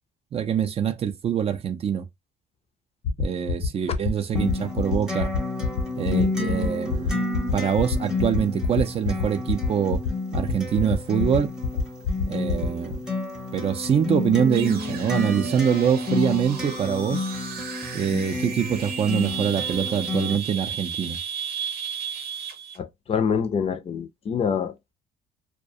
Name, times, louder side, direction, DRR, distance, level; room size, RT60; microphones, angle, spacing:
voice 1, 0.3-2.1 3.2-5.3 6.0-7.2 7.5-10.0 10.3-11.5 12.3-13.0 13.5-17.3 17.9-21.2, right 8 dB, 35° right, 0.4 m, -24 dB
sound 1, 3.0-12.9, left 7 dB, 80° left, 0.7 m, -26 dB
Acoustic guitar, 4.4-20.4, left 3 dB, 5° right, 0.7 m, -30 dB
sound 2, 14.5-22.8, right 7 dB, 65° right, 0.7 m, -34 dB
voice 2, 22.8-24.7, left 6 dB, 35° left, 0.4 m, -26 dB
2.3 x 2.1 x 2.6 m
cardioid pair, 110°, 17 cm